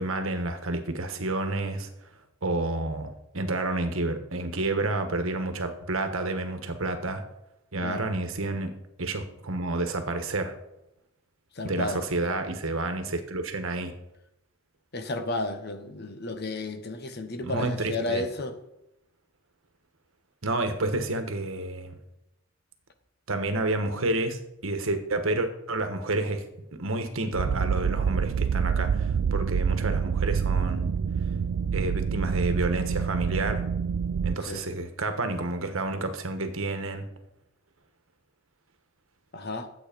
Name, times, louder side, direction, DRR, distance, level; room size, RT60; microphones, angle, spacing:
voice 1, 0.0-1.9 2.4-7.2 7.7-8.7 9.0-10.5 11.6-13.9 17.4-18.2 20.4-22.0 23.3-26.4 26.8-30.9 31.7-33.6 34.2-37.0, right 2 dB, 70° right, 1.4 m, -30 dB
voice 2, 11.5-12.0 14.9-18.5 34.4-34.7 39.3-39.7, left 2 dB, 45° left, 1.1 m, -32 dB
sound 1, 27.3-34.3, right 6 dB, 90° right, 0.4 m, -27 dB
12.0 x 8.1 x 5.2 m
head